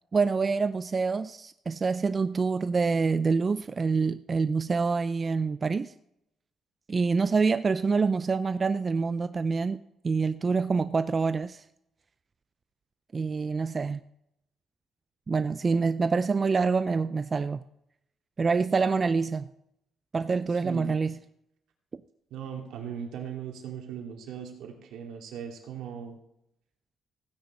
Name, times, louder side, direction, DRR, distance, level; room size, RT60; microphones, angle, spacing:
voice 1, 0.1-5.9 6.9-11.6 13.1-14.0 15.3-17.6 18.4-19.5 20.1-21.2, right 4 dB, 35° right, 0.5 m, -26 dB
voice 2, 20.6-21.0 22.3-26.2, right 8 dB, 85° right, 2.5 m, -38 dB
16.0 x 9.5 x 4.3 m
cardioid pair, 90°, 0 cm